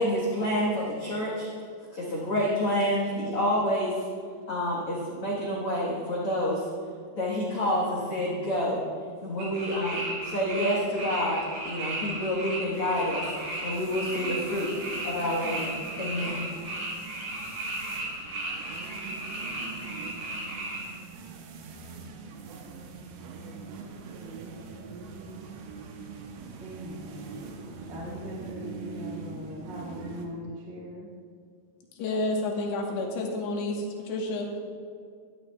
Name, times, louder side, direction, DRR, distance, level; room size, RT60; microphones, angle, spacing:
voice 1, 0.0-1.5 1.9-4.0 4.5-6.6 7.1-8.8 9.2-13.2 13.6-14.7 15.0-16.5, equal, 70° left, -5 dB, 1.3 m, -28 dB
sound 1, 9.4-20.8, right 2 dB, 60° right, 4.4 m, -35 dB
sound 2, 12.7-30.3, right 4 dB, 85° right, 3.0 m, -43 dB
voice 2, 26.6-27.4 27.9-31.1, equal, 30° right, -5 dB, 1.2 m, -40 dB
voice 3, 32.0-34.6, left 2 dB, 90° left, 0 dB, 3.3 m, -30 dB
12.5 x 12.0 x 2.3 m, 2.2 s
omnidirectional pair, 4.8 m